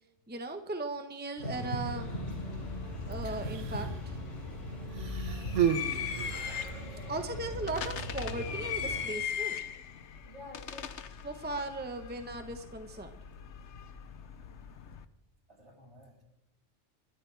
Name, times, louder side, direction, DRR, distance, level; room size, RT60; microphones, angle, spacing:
voice 1, 0.3-2.1 3.0-4.2 7.1-9.6 11.2-13.1, right 2 dB, 10° right, 6 dB, 1.0 m, -37 dB
sound 1, 1.4-9.0, equal, 85° left, 6.1 m, -39 dB
sound 2, 2.0-15.0, left 8 dB, 70° left, 1.1 m, -41 dB
Human voice, 3.1-4.0 4.9-6.9 7.8-7.9, right 9 dB, 85° right, 1.2 m, -33 dB
voice 2, 6.8-7.3 10.2-11.0 15.5-16.2, left 2 dB, 65° right, -1 dB, 4.0 m, -51 dB
29.5 x 13.5 x 3.4 m, 0.89 s
omnidirectional pair, 1.2 m